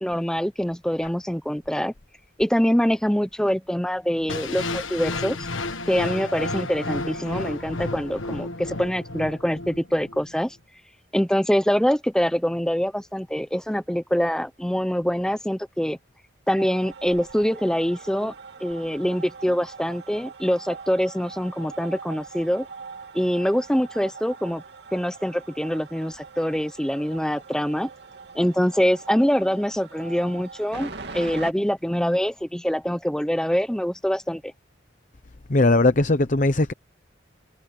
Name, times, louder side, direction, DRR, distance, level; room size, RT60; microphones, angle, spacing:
voice 1, 0.0-1.9 2.4-5.5 5.9-10.6 11.1-16.0 16.5-18.3 18.6-22.7 23.1-24.6 24.9-27.9 28.3-34.5, equal, 5° left, 0.8 m, -24 dB
sound 1, 4.3-10.3, left 2 dB, 85° left, 1.4 m, -32 dB
sound 2, 16.6-31.5, right 4 dB, 60° right, 2.7 m, -42 dB
voice 2, 35.5-36.7, left 2 dB, 40° left, 0.8 m, -19 dB
head